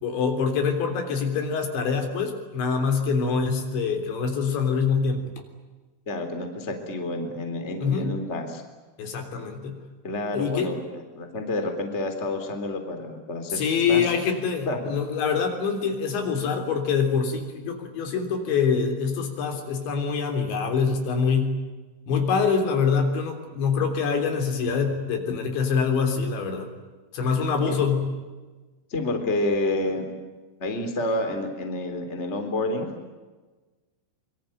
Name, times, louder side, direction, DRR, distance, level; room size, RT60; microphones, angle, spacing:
voice 1, 0.0-5.3 7.8-8.1 9.0-9.8 10.3-10.7 13.5-21.6 22.1-26.7 27.1-28.1, left 5 dB, 70° left, 5 dB, 5.7 m, -25 dB
voice 2, 6.1-8.6 10.0-14.1 14.7-14.8 27.7-27.8 28.9-30.0 30.6-32.9, left 2 dB, 15° left, 6 dB, 3.3 m, -29 dB
25.5 x 24.5 x 9.2 m, 1.3 s
omnidirectional pair, 5.5 m